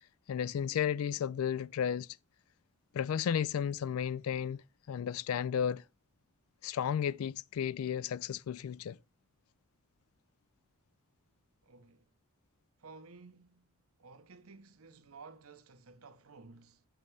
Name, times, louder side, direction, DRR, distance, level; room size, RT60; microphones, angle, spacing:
voice 1, 0.3-2.1 2.9-4.6 4.9-5.8 6.6-9.0, left 8 dB, 80° left, 0.3 m, -33 dB
voice 2, 11.6-12.1 12.8-16.9, right 4 dB, 90° right, 0.9 m, -55 dB
7.2 x 6.4 x 3.3 m
head